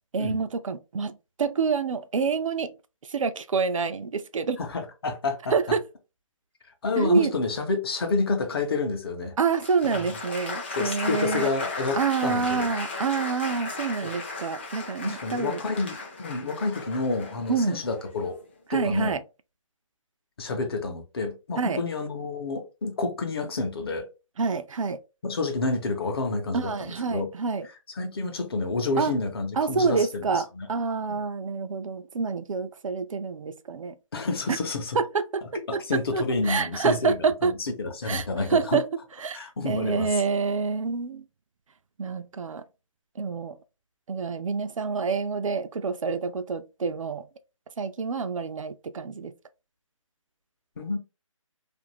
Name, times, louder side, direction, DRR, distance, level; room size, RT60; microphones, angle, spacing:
voice 1, 0.1-2.7 3.1-4.6 5.5-5.8 7.0-7.3 9.4-11.5 11.9-15.6 17.5-17.8 18.7-19.2 21.6-21.8 24.4-25.0 26.5-27.7 29.0-29.1 29.6-34.0 34.5-34.6 34.9-35.4 35.7-35.8 36.1-37.5 38.1-38.3 38.5-38.8 39.2-41.2 42.0-42.6 43.2-43.6 44.1-47.2 47.8-49.3, right 5 dB, 70° right, 0.4 m, -27 dB
voice 2, 4.6-5.8 6.8-9.4 10.7-12.0 12.2-12.7 14.0-14.2 15.0-18.4 18.7-19.2 20.4-24.1 25.2-27.3 28.0-30.7 31.1-31.2 34.1-35.0 35.7-38.8 39.3-40.2 50.8-51.0, left 3 dB, 45° left, 0.8 m, -29 dB
Applause, 9.5-18.5, left 3 dB, 20° left, 0.4 m, -36 dB
2.5 x 2.4 x 3.0 m
hypercardioid pair, 160°, 17 cm